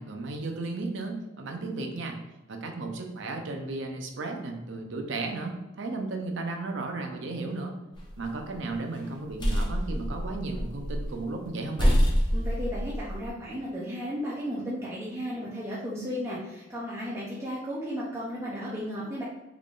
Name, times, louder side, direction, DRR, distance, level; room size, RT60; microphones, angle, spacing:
voice 1, 0.0-2.2 2.5-7.8 8.2-12.1, right 3 dB, 65° right, 3 dB, 0.6 m, -34 dB
sound 1, 8.0-8.5 9.0-11.2 11.4-11.5 11.8-13.3, equal, 25° left, 0.7 m, -26 dB
voice 2, 12.3-19.2, equal, 15° right, -7 dB, 0.6 m, -34 dB
3.7 x 3.5 x 2.4 m, 1.0 s
head